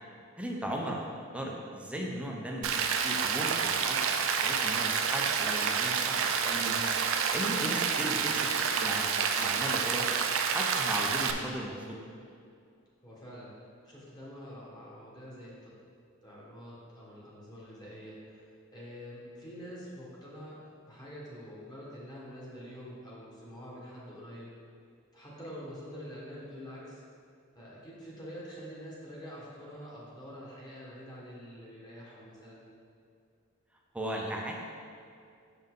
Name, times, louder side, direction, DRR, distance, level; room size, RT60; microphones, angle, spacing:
voice 1, 0.4-1.0 1.3-2.7 3.0-6.8 7.3-10.1 10.5-12.0 33.9-34.5, right 1 dB, 5° right, -1 dB, 0.7 m, -36 dB
Rain, 2.6-11.3, right 6 dB, 65° right, 0.5 m, -29 dB
voice 2, 13.0-13.5 13.8-15.8 16.2-20.6 20.8-24.5 25.1-27.0 27.5-32.6, equal, 20° left, -6 dB, 1.5 m, -46 dB
6.8 x 5.6 x 3.8 m, 2.4 s
head